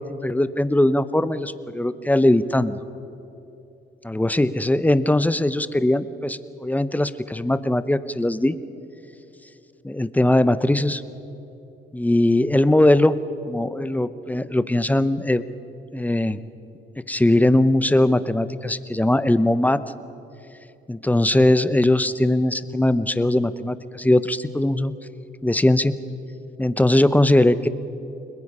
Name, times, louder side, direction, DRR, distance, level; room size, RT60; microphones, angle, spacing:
voice 1, 0.1-2.8 4.0-8.5 9.8-11.0 11.9-13.2 13.5-15.4 15.9-16.4 17.1-19.8 20.9-24.9 25.4-25.9 26.6-27.7, left 1 dB, 10° left, 13 dB, 0.8 m, -20 dB
29.5 x 21.5 x 5.5 m, 3.0 s
cardioid pair, 90°, 20 cm